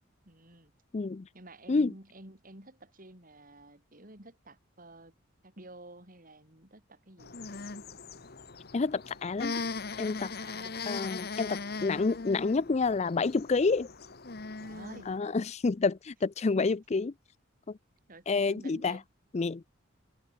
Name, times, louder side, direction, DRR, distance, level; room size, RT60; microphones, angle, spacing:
voice 1, 0.2-0.7 1.3-5.1 5.4-7.3 10.3-10.8 14.6-15.1 18.1-19.0, right 1 dB, 45° right, 6.1 m, -51 dB
voice 2, 0.9-1.3 1.7-1.9 8.7-9.6 10.0-10.3 10.9-13.9 15.1-17.1 17.7-17.8 18.3-19.0 19.3-19.6, left 4 dB, 35° left, 0.4 m, -28 dB
Alpacca makes a noise whilst scratching his throat, 7.2-15.2, left 4 dB, 55° left, 1.5 m, -39 dB
head